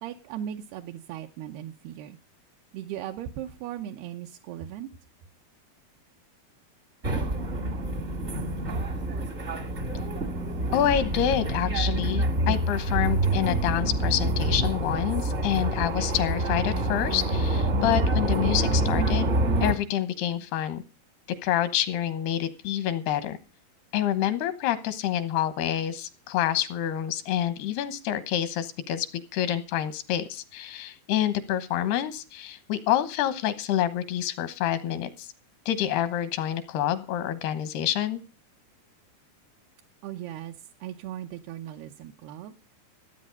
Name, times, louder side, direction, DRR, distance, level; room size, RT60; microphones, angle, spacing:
voice 1, 0.0-2.2 2.7-4.9 40.0-42.6, right 11 dB, 80° right, 3 dB, 2.8 m, -38 dB
sound 1, 7.0-19.7, right 1 dB, 45° right, 0.8 m, -27 dB
voice 2, 10.7-19.3 19.6-20.8 21.4-23.4 23.9-29.1 29.3-35.3 35.7-38.2, left 11 dB, 85° left, 12 dB, 3.1 m, -27 dB
15.0 x 8.8 x 5.3 m, 0.34 s
omnidirectional pair, 4.6 m